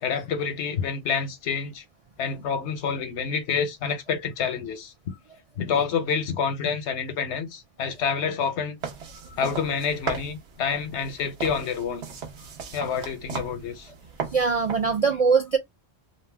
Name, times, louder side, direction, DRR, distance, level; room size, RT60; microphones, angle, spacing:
voice 1, 0.0-1.8 2.2-4.9 5.6-8.8 9.4-12.0 12.7-13.9, left 6 dB, 90° left, 1.0 m, -28 dB
sound 1, 8.8-15.0, right 6 dB, 80° right, 1.1 m, -37 dB
voice 2, 14.3-15.6, right 5 dB, 55° right, 0.4 m, -22 dB
2.9 x 2.1 x 3.2 m
omnidirectional pair, 1.1 m